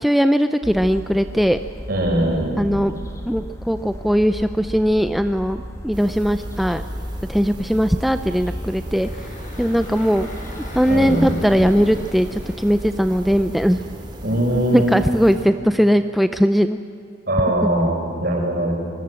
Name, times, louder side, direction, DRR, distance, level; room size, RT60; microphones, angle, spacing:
voice 1, 0.0-1.6 2.6-2.9 3.2-6.8 7.3-9.1 9.6-10.3 10.7-13.8 14.7-16.8 17.6-17.7, equal, ahead, 8 dB, 0.5 m, -19 dB
sound 1, 0.6-12.6, equal, 15° left, 2.2 m, -35 dB
voice 2, 1.9-2.5 10.9-11.3 14.2-15.1 17.3-18.7, right 1 dB, 55° right, 0 dB, 6.7 m, -21 dB
sound 2, 5.9-15.4, equal, 25° right, 3.3 m, -37 dB
Engine, 8.7-14.0, equal, 40° left, 6.9 m, -39 dB
26.0 x 21.0 x 7.7 m, 2.6 s
head